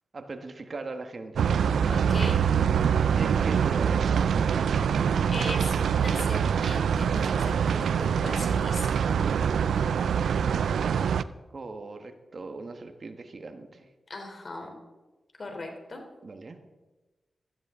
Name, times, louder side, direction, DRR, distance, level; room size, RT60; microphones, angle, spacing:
voice 1, 0.1-1.5 3.1-4.3 11.5-13.9 16.2-16.6, right 3 dB, 55° right, 7 dB, 1.5 m, -39 dB
sound 1, 1.4-11.2, right 7 dB, 85° right, 0.3 m, -24 dB
voice 2, 1.9-2.5 5.3-9.0 14.1-14.8 15.4-16.0, left 2 dB, 55° left, 3 dB, 3.5 m, -38 dB
15.5 x 13.5 x 3.8 m, 1.2 s
supercardioid pair, 40°, 0 cm